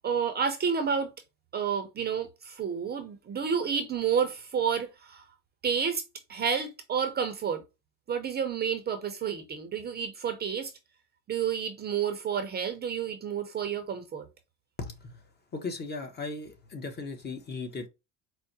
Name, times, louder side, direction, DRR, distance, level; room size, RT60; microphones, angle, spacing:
voice 1, 0.0-1.1 1.5-5.2 5.6-6.0 6.3-7.6 8.1-10.7 11.3-14.3, right 7 dB, 25° right, 0.6 m, -30 dB
voice 2, 14.8-15.1 15.5-17.9, left 3 dB, 25° left, 0.8 m, -37 dB
4.6 x 2.1 x 2.7 m
supercardioid pair, 115°, 37 cm